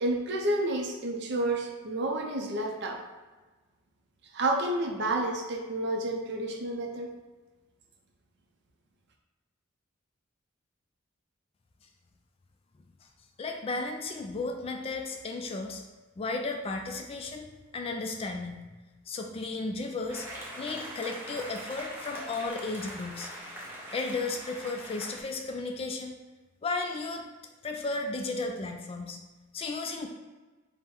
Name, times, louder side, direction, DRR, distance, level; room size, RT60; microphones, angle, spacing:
voice 1, 0.0-3.0 4.3-7.1, right 1 dB, 60° right, 2 dB, 0.5 m, -30 dB
voice 2, 13.4-15.8 16.2-18.6 19.1-20.3 20.6-23.3 23.9-26.1 26.6-27.2 27.6-29.2 29.5-30.1, left 3 dB, 30° left, 4 dB, 0.3 m, -34 dB
sound 1, 20.1-25.2, equal, 10° right, 0.6 m, -42 dB
3.6 x 2.1 x 4.2 m, 1.2 s
head